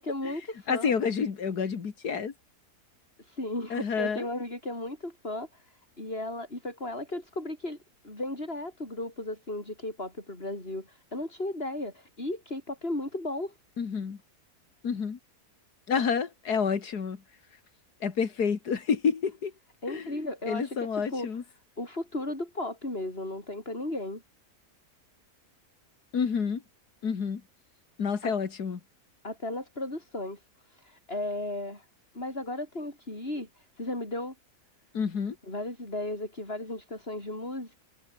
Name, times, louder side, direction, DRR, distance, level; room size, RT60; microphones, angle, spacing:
voice 1, 0.0-0.9 3.2-7.8 8.0-13.5 19.8-21.3 21.8-24.2 28.2-28.3 29.2-30.4 30.7-31.9 32.1-34.3 35.5-37.8, left 1 dB, 40° left, 7.3 m, -35 dB
voice 2, 0.7-2.3 3.7-4.3 13.8-14.2 14.8-15.2 15.9-17.2 18.0-19.5 19.9-20.1 20.5-21.4 26.1-26.6 27.0-27.4 28.0-28.8 34.9-35.4, left 6 dB, 90° left, 2.5 m, -29 dB
omnidirectional pair, 1.6 m